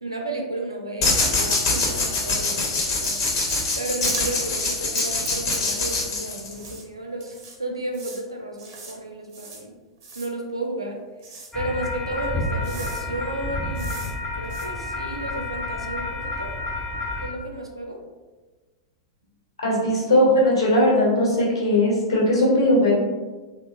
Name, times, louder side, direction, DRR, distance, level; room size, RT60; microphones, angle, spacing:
voice 1, 0.0-3.2 3.7-7.3 7.6-9.7 10.1-11.0 11.5-16.5 17.2-18.0, right 2 dB, 90° right, 0 dB, 0.4 m, -33 dB
sound 1, 1.0-6.7, left 3 dB, 45° left, 0.6 m, -24 dB
sound 2, 1.9-2.2 2.5-2.8 3.0-3.7 4.0-4.5 4.9-6.2 6.5-6.8 7.2-7.6 7.9-8.2 8.6-9.0 9.3-9.6 10.0-10.3 11.2-11.5 12.2-12.3 12.6-13.0 13.7-14.1 14.4-14.7, right 4 dB, 45° right, 0.7 m, -39 dB
sound 3, 11.5-17.3, left 2 dB, 5° left, 0.4 m, -30 dB
voice 2, 19.6-23.0, left 1 dB, 75° left, -4 dB, 0.9 m, -19 dB
2.9 x 2.0 x 2.3 m, 1.3 s
figure-of-eight pair, 95°, 3 cm